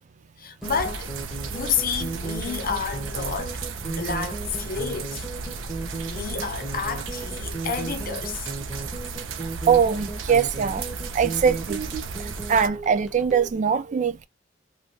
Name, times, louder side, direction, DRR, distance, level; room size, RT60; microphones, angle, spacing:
voice 1, 0.4-1.1 1.5-5.3 6.1-8.5, left 6 dB, 50° left, 0.6 m, -30 dB
sound 1, 0.6-13.5, right 3 dB, ahead, 0.6 m, -36 dB
sound 2, 0.6-12.7, right 4 dB, 90° right, 0.5 m, -34 dB
voice 2, 9.7-10.8 11.1-11.8 12.5-14.3, right 7 dB, 40° right, 0.3 m, -21 dB
3.1 x 2.2 x 2.6 m
head